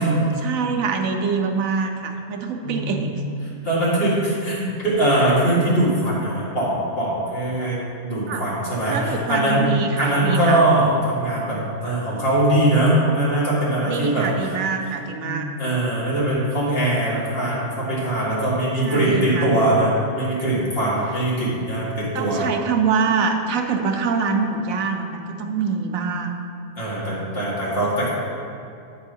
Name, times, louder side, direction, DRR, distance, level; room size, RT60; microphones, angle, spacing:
voice 1, 0.0-3.2 8.3-8.5 8.9-10.6 13.8-15.5 18.8-19.6 22.1-26.3 27.7-27.8, right 5 dB, 80° right, 4 dB, 1.1 m, -25 dB
voice 2, 2.6-3.2 3.6-9.6 10.0-14.3 15.2-22.4 26.8-28.1, right 1 dB, 45° left, -7 dB, 2.2 m, -21 dB
8.1 x 5.3 x 5.2 m, 2.5 s
omnidirectional pair, 1.4 m